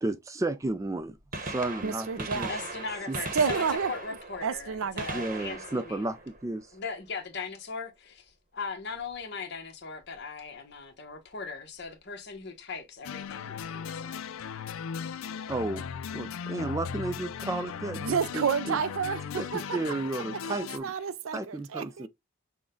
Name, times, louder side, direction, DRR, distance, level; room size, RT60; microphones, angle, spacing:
voice 1, 0.0-1.2 1.4-2.5 3.1-3.2 5.1-6.7 15.5-15.8 16.1-18.8 19.4-20.9 21.3-22.1, right 2 dB, 15° right, 0.3 m, -33 dB
Gunshot gunfire, 0.6-0.7 1.2-7.0 9.0-9.1 10.1-10.2 11.8-11.9 13.3-13.4 13.6-13.7, right 3 dB, 40° right, 0.9 m, -39 dB
voice 2, 1.8-2.5 3.3-3.9 4.4-5.3 17.9-19.8 20.8-22.1, right 6 dB, 80° right, 0.5 m, -30 dB
voice 3, 2.5-6.1 6.7-14.2, left 4 dB, 55° left, 1.0 m, -39 dB
sound 1, 13.0-20.8, left 7 dB, 85° left, 0.4 m, -37 dB
6.2 x 2.2 x 3.6 m
head